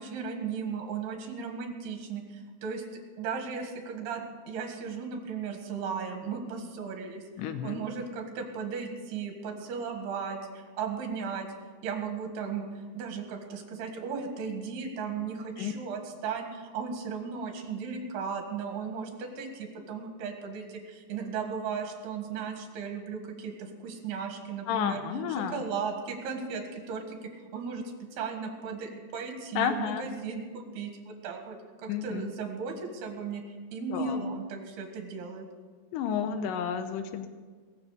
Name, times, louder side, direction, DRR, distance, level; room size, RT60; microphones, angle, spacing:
voice 1, 0.0-2.8 3.2-4.2 4.5-7.2 7.6-11.5 11.8-12.7 12.9-25.0 25.5-33.4 33.7-35.5, right 5 dB, 75° right, 4 dB, 3.7 m, -36 dB
voice 2, 7.4-7.8 15.6-15.7 24.7-25.6 29.6-30.1 31.9-32.3 33.9-34.3 35.9-37.3, left 7 dB, 80° left, 9 dB, 1.9 m, -31 dB
20.0 x 7.4 x 6.6 m, 1.5 s
omnidirectional pair, 4.8 m